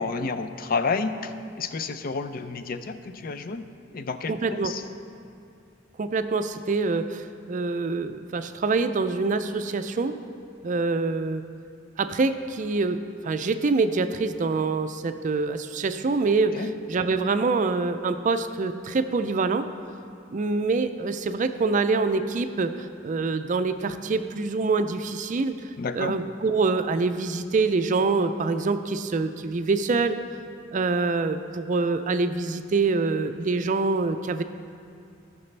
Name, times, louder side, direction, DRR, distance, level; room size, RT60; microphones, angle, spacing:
voice 1, 0.0-3.7 3.9-4.8 16.5-16.7 25.8-26.2, left 4 dB, 50° left, 10 dB, 0.4 m, -30 dB
voice 2, 4.3-4.7 6.0-10.1 10.6-11.4 12.0-13.0 13.2-19.7 20.3-25.6 25.9-30.2 30.7-34.4, right 3 dB, 40° right, 10 dB, 0.4 m, -25 dB
17.5 x 5.9 x 3.3 m, 2.5 s
head